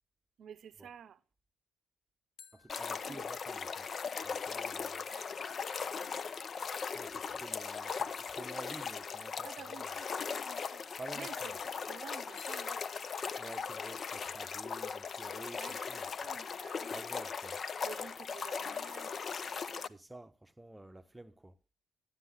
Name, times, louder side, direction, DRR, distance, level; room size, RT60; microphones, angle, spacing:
voice 1, 0.4-1.2 3.0-3.2 4.9-5.4 5.8-6.4 9.4-12.8 15.5-15.8 16.2-17.0 17.8-19.9, right 8 dB, 60° right, 0.6 m, -52 dB
sound 1, 2.4-5.9 12.4-15.1, left 7 dB, 65° left, 1.0 m, -63 dB
voice 2, 2.5-3.9 4.2-5.0 6.9-9.9 11.0-11.6 13.4-16.1 16.9-17.6 19.9-21.6, right 2 dB, 15° right, 0.8 m, -50 dB
sound 2, 2.7-19.9, left 6 dB, 50° left, 0.6 m, -39 dB
11.0 x 10.0 x 3.8 m
hypercardioid pair, 55°, 0 cm